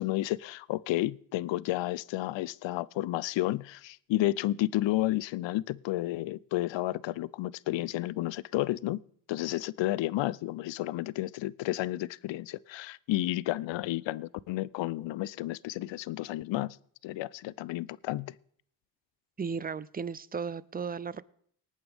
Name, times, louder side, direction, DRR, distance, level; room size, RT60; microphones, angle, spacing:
voice 1, 0.0-9.0 9.3-16.8 17.0-18.3, left 16 dB, 70° left, 0.5 m, -31 dB
voice 2, 19.4-21.2, right 6 dB, 20° right, 0.5 m, -35 dB
19.5 x 8.8 x 3.5 m
supercardioid pair, 55°, 46 cm